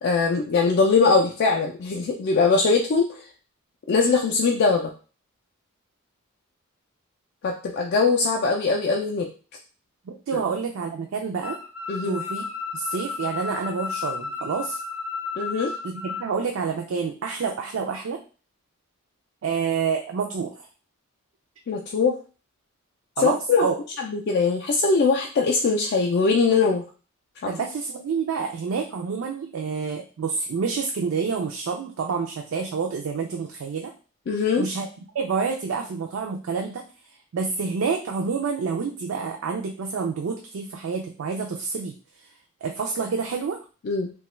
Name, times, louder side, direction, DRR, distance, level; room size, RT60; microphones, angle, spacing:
voice 1, 0.0-3.1 3.9-4.8 7.4-9.3 10.3-10.4 11.9-12.2 15.4-15.7 21.7-22.1 23.2-23.7 24.0-26.8 34.3-34.7 43.9-44.1, left 4 dB, 50° left, 0 dB, 0.3 m, -21 dB
voice 2, 10.1-11.6 12.0-12.4 12.7-14.8 15.9-18.2 19.4-20.7 23.2-23.8 27.5-33.9 34.6-34.9 35.1-36.8 37.3-42.0 42.6-43.6, right 5 dB, 65° right, 2 dB, 0.4 m, -28 dB
sound 1, 11.4-16.3, left 5 dB, 10° right, 0.5 m, -33 dB
2.8 x 2.3 x 3.0 m, 0.37 s
head